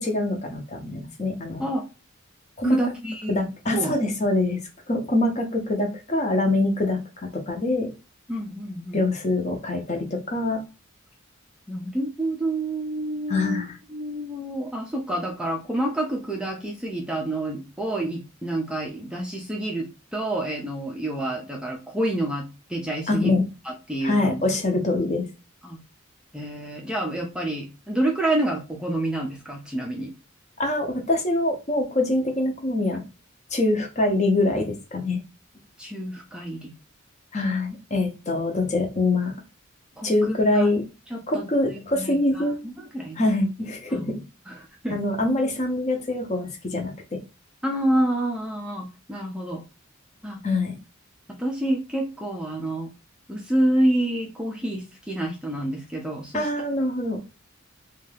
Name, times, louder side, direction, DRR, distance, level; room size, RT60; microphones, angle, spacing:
voice 1, 0.0-1.6 2.6-2.8 3.3-4.6 4.9-7.0 7.3-7.9 8.9-10.6 13.3-13.8 23.1-23.4 24.0-25.3 30.6-33.0 33.5-35.2 37.3-39.3 40.0-40.8 41.3-42.6 43.2-44.2 44.9-47.2 50.4-50.8 56.3-57.2, left 2 dB, 35° left, 4 dB, 0.6 m, -24 dB
voice 2, 2.6-4.0 8.3-9.0 11.7-23.4 23.6-24.4 25.6-25.8 26.3-30.1 35.8-36.7 40.0-40.7 41.1-43.2 43.9-44.2 44.5-45.0 47.6-49.6 50.2-50.4 51.3-52.9 53.3-56.5, right 1 dB, 5° right, 0 dB, 0.4 m, -28 dB
2.7 x 2.3 x 3.2 m, 0.30 s
head